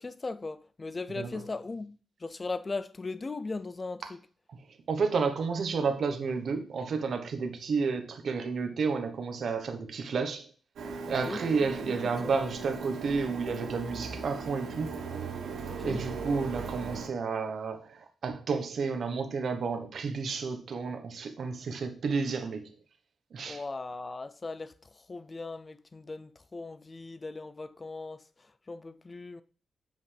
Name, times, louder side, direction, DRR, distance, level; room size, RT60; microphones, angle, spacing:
voice 1, 0.0-4.2 11.0-11.5 12.0-12.3 15.7-16.1 23.5-29.4, left 3 dB, 30° left, 0.4 m, -39 dB
voice 2, 4.9-10.5 11.1-14.9 15.8-22.7 23.3-23.6, right 5 dB, 65° right, 1.0 m, -31 dB
Printer, 10.8-17.1, right 5 dB, 90° right, 1.1 m, -38 dB
7.6 x 5.3 x 3.3 m
cardioid pair, 90°, 0 cm